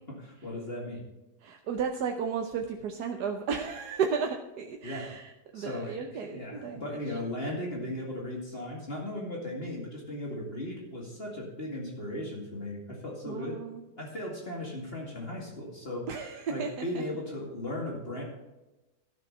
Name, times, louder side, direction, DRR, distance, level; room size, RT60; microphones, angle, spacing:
voice 1, 0.2-1.0 4.8-5.1 5.5-13.6 14.0-16.1 16.5-18.2, left 1 dB, 40° left, -2 dB, 2.5 m, -37 dB
voice 2, 1.4-7.2 13.3-13.8 16.1-17.0, right 6 dB, 85° right, 3 dB, 1.4 m, -34 dB
13.0 x 6.8 x 5.5 m, 1.0 s
omnidirectional pair, 1.7 m